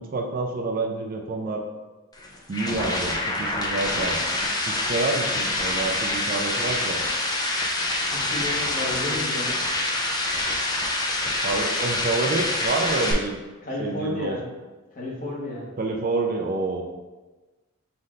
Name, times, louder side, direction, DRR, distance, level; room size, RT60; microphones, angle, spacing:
voice 1, 0.0-1.6 2.5-7.0 11.4-13.4 13.8-14.4 15.8-16.8, right 3 dB, 40° right, 2 dB, 0.4 m, -28 dB
sound 1, 2.1-13.1, left 2 dB, 20° left, 0.5 m, -26 dB
voice 2, 8.0-9.6 13.6-14.4 14.9-15.7, left 1 dB, 40° left, -5 dB, 1.1 m, -32 dB
5.5 x 2.6 x 3.2 m, 1.2 s
head